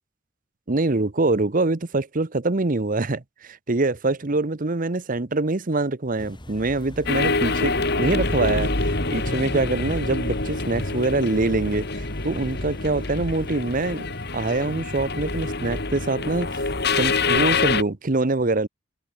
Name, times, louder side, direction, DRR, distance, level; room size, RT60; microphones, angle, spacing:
voice 1, 0.7-14.1 14.3-16.7 16.9-18.7, right 2 dB, 45° right, 1.0 m, -24 dB
sound 1, 6.2-16.7, equal, 25° left, 4.0 m, -41 dB
sound 2, 7.1-17.8, left 3 dB, 55° left, 3.2 m, -26 dB
open air
head